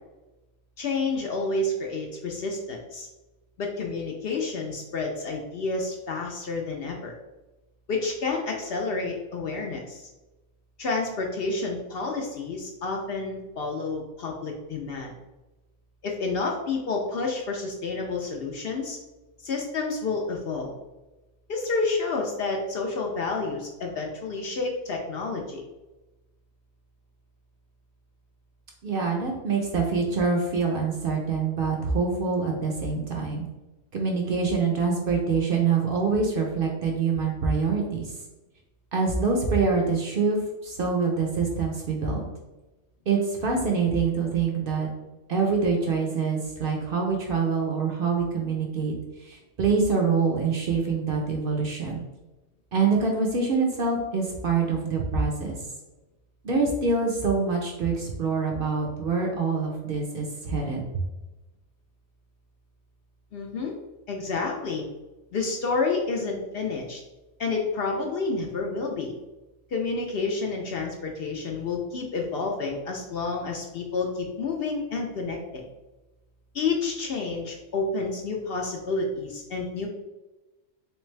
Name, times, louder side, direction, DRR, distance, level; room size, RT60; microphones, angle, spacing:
voice 1, 0.8-3.1 3.6-7.1 7.9-10.1 10.8-15.1 16.0-19.0 19.4-20.7 21.5-25.6 63.3-63.7 64.1-64.8 65.3-67.0 67.4-69.1 69.7-75.7 76.5-79.9, left 3 dB, 60° left, 0 dB, 0.7 m, -29 dB
voice 2, 28.8-33.5 33.9-38.1 38.9-42.3 43.1-44.9 45.3-48.9 49.2-52.0 52.7-55.6 56.4-60.8, right 4 dB, 55° right, 1 dB, 0.7 m, -25 dB
3.5 x 3.2 x 3.1 m, 1.1 s
omnidirectional pair, 1.3 m